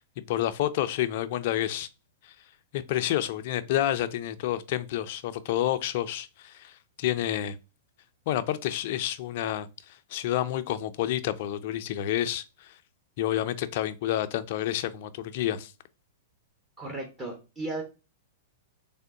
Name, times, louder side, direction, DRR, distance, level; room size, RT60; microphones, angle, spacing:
voice 1, 0.3-1.9 2.7-6.7 7.0-7.6 8.3-9.7 10.1-12.7 13.2-15.7, left 12 dB, 55° left, 0.4 m, -29 dB
voice 2, 16.8-17.8, right 2 dB, 20° right, 1.0 m, -35 dB
3.6 x 2.1 x 3.7 m
hypercardioid pair, 110°, 0 cm